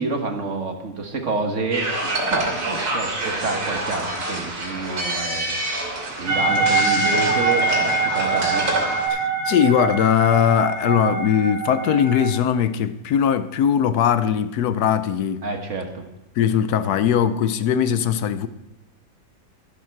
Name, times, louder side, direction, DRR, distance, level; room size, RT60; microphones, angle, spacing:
voice 1, 0.0-5.6 6.2-8.7 15.4-16.1, right 3 dB, 40° right, 1.5 m, -28 dB
sound 1, 1.7-9.1, right 2 dB, 65° right, 3.5 m, -27 dB
sound 2, 6.3-12.4, right 3 dB, 85° right, 2.0 m, -23 dB
voice 2, 9.1-15.5 16.4-18.5, left 8 dB, 70° left, 1.0 m, -20 dB
12.5 x 11.5 x 4.6 m
omnidirectional pair, 2.1 m